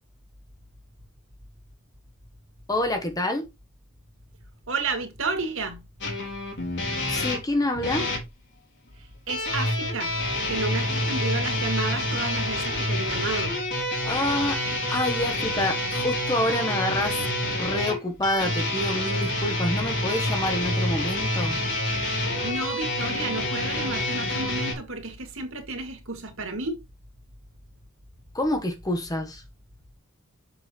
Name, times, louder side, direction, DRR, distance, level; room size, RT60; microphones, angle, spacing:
voice 1, 2.7-3.4 7.1-8.1 14.0-14.6 14.9-17.2 17.6-21.6 28.3-29.4, left 1 dB, 15° left, 1.1 m, -27 dB
voice 2, 4.7-5.8 9.3-10.2 10.5-13.6 22.4-26.8, right 3 dB, 65° right, 2.2 m, -31 dB
sound 1, 6.0-8.2 9.3-24.7, left 1 dB, 55° left, 3.9 m, -27 dB
7.0 x 6.9 x 3.1 m
head